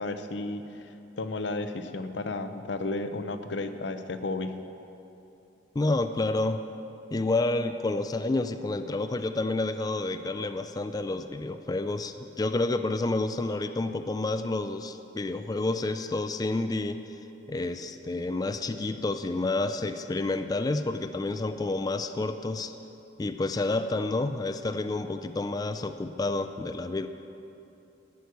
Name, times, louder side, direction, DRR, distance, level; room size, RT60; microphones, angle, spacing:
voice 1, 0.0-4.5, left 2 dB, 90° left, 9 dB, 0.7 m, -33 dB
voice 2, 5.8-6.6 7.1-17.0 17.5-22.7 23.2-27.1, left 2 dB, 20° left, 8 dB, 0.4 m, -29 dB
14.0 x 6.3 x 8.2 m, 2.9 s
head